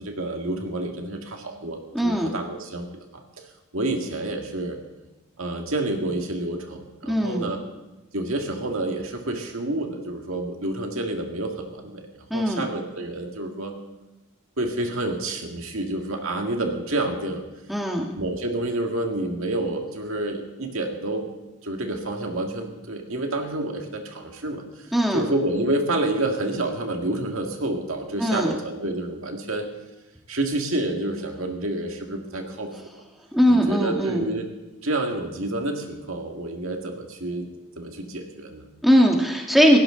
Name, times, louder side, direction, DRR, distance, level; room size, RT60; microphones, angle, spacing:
voice 1, 0.0-3.5 3.7-4.8 5.4-7.6 8.1-13.8 14.6-17.4 18.0-21.3 21.6-29.7 30.3-33.0 33.5-34.5 34.8-37.5 37.8-38.6, right 2 dB, 65° right, 3 dB, 2.1 m, -29 dB
voice 2, 1.9-2.3 7.1-7.5 12.3-12.7 17.7-18.1 24.9-25.2 28.2-28.5 33.3-34.3 38.8-39.8, equal, ahead, 0 dB, 1.6 m, -20 dB
18.5 x 16.5 x 3.9 m, 1.0 s
head